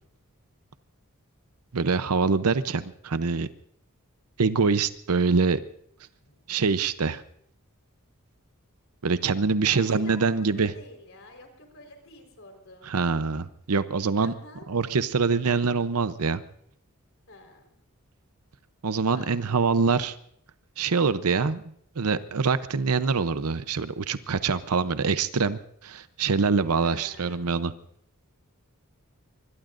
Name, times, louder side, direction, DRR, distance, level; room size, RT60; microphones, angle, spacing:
voice 1, 1.7-3.5 4.4-5.6 6.5-7.2 9.0-10.7 12.8-14.3 14.7-16.4 18.8-20.2 20.8-21.6 22.0-27.7, right 4 dB, 85° right, 13 dB, 0.7 m, -24 dB
voice 2, 9.6-12.9 14.2-14.7 17.3-17.7 19.1-19.4 26.8-27.4, left 2 dB, 65° left, 4 dB, 4.3 m, -48 dB
25.0 x 21.5 x 2.6 m, 0.68 s
head